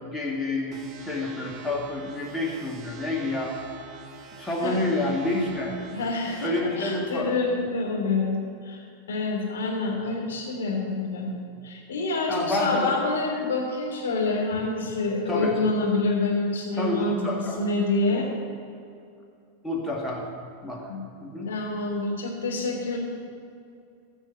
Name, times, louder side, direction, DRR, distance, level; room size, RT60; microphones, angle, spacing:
voice 1, 0.0-3.5 4.4-5.8 6.4-7.4 12.3-12.9 15.3-15.5 16.8-17.6 18.1-18.2 19.6-20.3 20.6-20.9 21.2-21.5, left 2 dB, 10° left, -2 dB, 2.3 m, -28 dB
sound 1, 0.7-6.5, right 4 dB, 30° right, 1.0 m, -45 dB
voice 2, 5.9-8.3 8.6-8.8 9.1-11.4 11.6-18.3 20.9-21.0 21.4-23.0, left 3 dB, 65° left, -2 dB, 3.3 m, -27 dB
15.0 x 6.3 x 7.5 m, 2.4 s
figure-of-eight pair, 90°, 0 cm